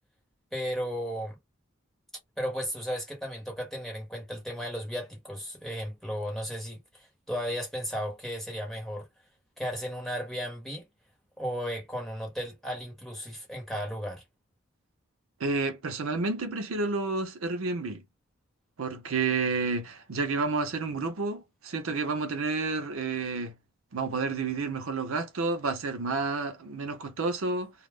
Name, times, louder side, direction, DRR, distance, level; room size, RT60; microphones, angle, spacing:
voice 1, 0.5-1.4 2.4-9.1 9.6-10.8 11.4-14.2, equal, ahead, 1.0 m, -35 dB
voice 2, 15.4-18.0 18.8-23.5 23.9-27.7, right 4 dB, 75° right, 0.6 m, -30 dB
2.3 x 2.0 x 3.3 m
head